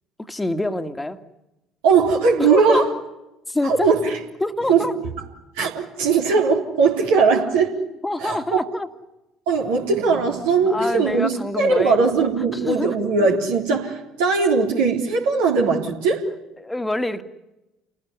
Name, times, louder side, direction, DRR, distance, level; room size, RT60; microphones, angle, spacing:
voice 1, 0.2-1.2 2.4-2.8 3.5-3.9 4.4-4.9 8.0-8.9 10.7-12.0 12.5-12.9 16.6-17.2, left 1 dB, 10° left, 10 dB, 2.1 m, -25 dB
voice 2, 1.8-2.9 3.6-4.2 4.7-4.9 5.6-7.8 8.2-8.6 9.5-16.3, right 4 dB, 70° right, 0 dB, 3.6 m, -19 dB
30.0 x 19.5 x 9.8 m, 0.97 s
figure-of-eight pair, 55°, 0 cm